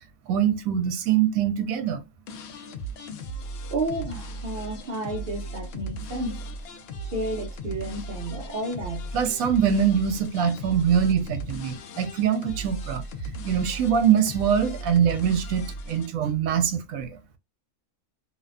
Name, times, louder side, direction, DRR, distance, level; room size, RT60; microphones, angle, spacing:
voice 1, 0.3-2.0 9.1-13.0 13.4-17.2, right 8 dB, 85° right, 1.0 m, -23 dB
sound 1, 2.3-16.1, right 1 dB, 65° left, 0.6 m, -37 dB
voice 2, 3.7-6.4 7.0-9.1, right 1 dB, 55° right, 0.7 m, -31 dB
2.7 x 2.1 x 2.4 m
omnidirectional pair, 1.5 m